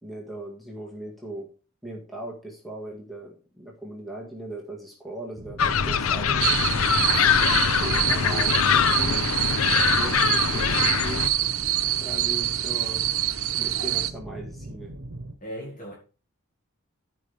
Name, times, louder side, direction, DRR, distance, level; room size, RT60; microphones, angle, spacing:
voice 1, 0.0-1.5 1.8-6.4 7.4-9.3 10.0-11.3 12.0-13.1 13.5-14.9, right 1 dB, ahead, 1.9 m, -39 dB
sound 1, 5.4-15.4, right 1 dB, 65° right, 1.2 m, -41 dB
sound 2, 5.6-11.3, left 7 dB, 85° left, 0.6 m, -23 dB
sound 3, 6.4-14.1, right 13 dB, 80° right, 0.8 m, -26 dB
voice 2, 7.2-8.7 15.4-15.9, right 1 dB, 40° left, 2.1 m, -40 dB
14.0 x 5.2 x 3.5 m
head